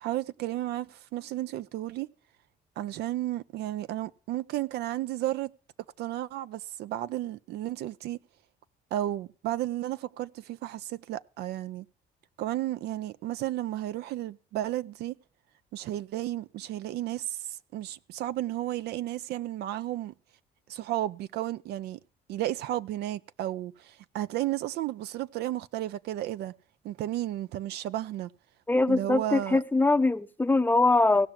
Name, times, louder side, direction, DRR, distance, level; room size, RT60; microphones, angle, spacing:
voice 1, 0.0-2.1 2.8-5.5 6.0-8.2 8.9-11.9 12.4-15.2 15.7-20.1 20.7-22.0 22.3-26.5 26.8-28.3 28.9-29.6, right 14 dB, 75° right, 0.6 m, -33 dB
voice 2, 28.7-31.3, left 2 dB, 10° left, 0.6 m, -23 dB
17.0 x 5.8 x 8.9 m
cardioid pair, 110°, 17 cm